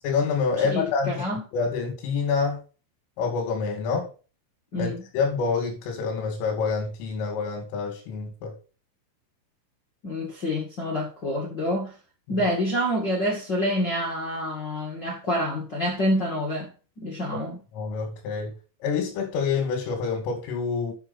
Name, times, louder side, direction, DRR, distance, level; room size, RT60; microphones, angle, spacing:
voice 1, 0.0-1.2 1.5-2.6 3.2-4.1 4.7-8.5 12.3-12.4 17.7-18.5 18.8-20.9, left 5 dB, 80° left, 4.9 m, -27 dB
voice 2, 0.6-1.4 4.7-5.1 10.0-11.9 12.3-16.7 17.0-17.6, equal, 50° left, 1.2 m, -27 dB
9.7 x 6.2 x 4.2 m
omnidirectional pair, 5.8 m